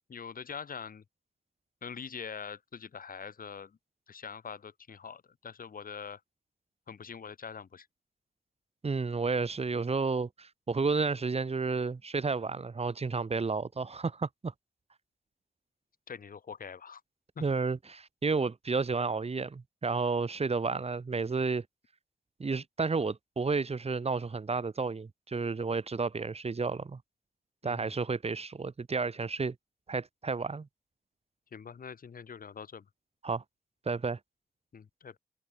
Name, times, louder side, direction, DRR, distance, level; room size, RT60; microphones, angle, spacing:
voice 1, 0.1-1.0 1.8-3.8 4.1-6.2 6.9-7.9 16.1-17.0 17.4-17.5 27.6-27.9 31.5-32.8 34.7-35.2, left 6 dB, 75° left, 5.0 m, -44 dB
voice 2, 8.8-14.5 17.4-21.6 22.4-27.0 27.6-29.5 29.9-30.7 33.2-33.4 33.9-34.2, right 4 dB, 45° right, 4.2 m, -31 dB
wide cardioid pair, 105°, 15 cm